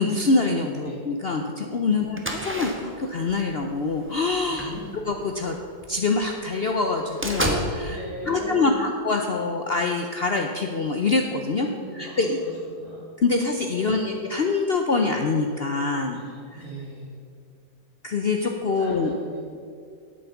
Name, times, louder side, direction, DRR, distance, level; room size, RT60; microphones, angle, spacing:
voice 1, 0.0-4.7 5.1-5.6 5.9-8.0 8.3-11.7 12.0-12.4 13.2-16.2 18.0-19.1, left 3 dB, 75° left, 3 dB, 0.5 m, -25 dB
sound 1, 2.1-6.0 6.4-6.5 6.8-7.6, right 1 dB, 10° right, 0.9 m, -31 dB
voice 2, 4.6-5.0 7.9-8.9 11.6-13.1 13.8-14.2 16.1-17.1 18.7-19.4, right 1 dB, 50° right, -10 dB, 3.7 m, -38 dB
9.0 x 8.5 x 7.0 m, 2.3 s
omnidirectional pair, 2.0 m